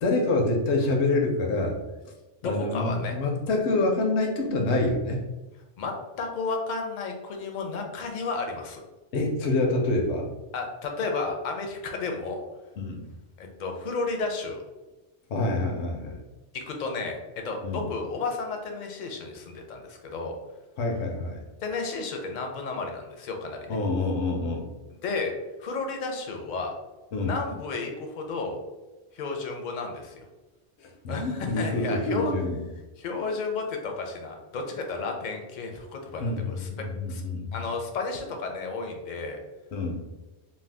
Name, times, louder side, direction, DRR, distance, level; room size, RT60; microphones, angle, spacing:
voice 1, 0.0-1.7 2.4-5.2 9.1-10.2 12.8-13.0 15.3-16.2 17.6-17.9 20.8-21.4 23.7-24.6 27.1-27.3 30.8-32.6 36.2-37.6 39.7-40.0, left 2 dB, 85° left, 1 dB, 0.9 m, -26 dB
voice 2, 2.4-3.1 5.8-8.8 10.5-12.4 13.4-14.6 16.5-20.4 21.6-23.8 25.0-25.3 25.6-26.7 27.2-28.6 29.1-30.3 31.1-32.3 33.0-36.7 37.1-37.2 37.5-39.4, left 4 dB, 55° left, 3 dB, 0.6 m, -32 dB
2.6 x 2.2 x 3.3 m, 1.1 s
omnidirectional pair, 1.1 m